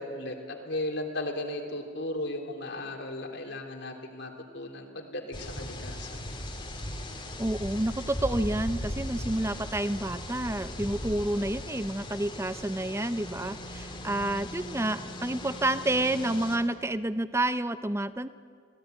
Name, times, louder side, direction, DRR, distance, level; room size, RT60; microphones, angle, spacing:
voice 1, 0.0-6.2, left 1 dB, 55° left, 3 dB, 3.2 m, -36 dB
sound 1, 5.3-16.6, left 1 dB, 20° left, 2.7 m, -38 dB
voice 2, 7.4-18.3, right 1 dB, 15° right, 12 dB, 0.7 m, -29 dB
26.0 x 17.5 x 9.2 m, 2.1 s
head